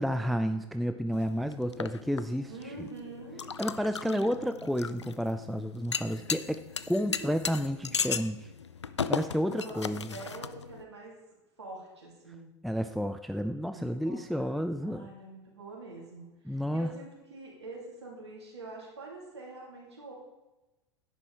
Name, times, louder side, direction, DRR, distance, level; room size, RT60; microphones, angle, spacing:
voice 1, 0.0-2.5 2.8-2.9 3.6-8.5 9.1-10.2 12.6-15.1 16.5-16.9, equal, ahead, 9 dB, 0.4 m, -31 dB
sound 1, 1.1-10.8, left 6 dB, 80° left, 0.5 m, -37 dB
voice 2, 2.5-3.4 4.0-4.2 7.2-8.1 9.4-11.1 11.6-12.5 13.7-14.5 14.8-20.1, right 3 dB, 75° right, -3 dB, 3.3 m, -45 dB
11.0 x 9.8 x 3.6 m, 1.0 s
figure-of-eight pair, 80°, 14 cm